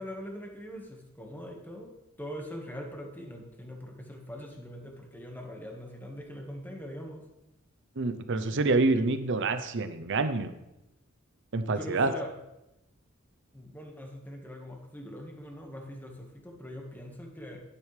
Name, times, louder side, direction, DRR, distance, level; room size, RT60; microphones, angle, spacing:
voice 1, 0.0-7.2 11.7-12.3 13.5-17.6, equal, 10° left, 1 dB, 1.7 m, -42 dB
voice 2, 8.0-10.5 11.5-12.1, right 3 dB, 60° right, 9 dB, 0.8 m, -27 dB
10.5 x 9.9 x 3.4 m, 0.90 s
head